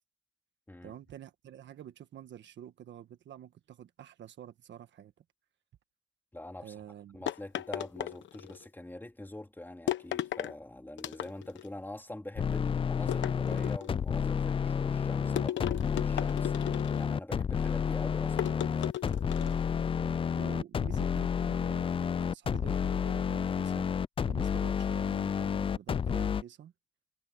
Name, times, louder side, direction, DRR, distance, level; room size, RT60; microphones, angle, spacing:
voice 1, 0.8-5.1 6.6-7.2 19.7-19.9 20.4-21.9 22.2-23.9 24.3-26.7, right 10 dB, 65° right, 1.5 m, -48 dB
voice 2, 6.3-6.7 7.1-16.5 16.9-18.6, left 1 dB, 10° left, 3.6 m, -45 dB
sound 1, 7.3-8.6 9.9-10.5 11.0-11.7 13.1-14.0 15.4-17.1 18.4-19.7, left 12 dB, 70° left, 1.1 m, -35 dB
sound 2, 12.4-26.4, left 7 dB, 30° left, 0.3 m, -30 dB
cardioid pair, 90°, 20 cm